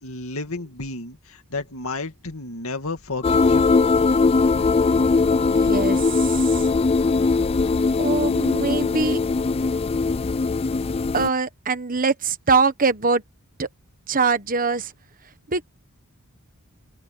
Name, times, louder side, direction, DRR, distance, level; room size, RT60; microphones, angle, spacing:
voice 1, 0.0-3.7, left 3 dB, 65° left, 2.5 m, -32 dB
sound 1, 3.2-11.3, left 4 dB, 25° left, 0.3 m, -20 dB
voice 2, 5.4-6.7 8.0-9.2 11.1-13.2 13.6-13.7 14.1-14.9 15.5-15.6, right 4 dB, 40° right, 1.2 m, -23 dB
open air
head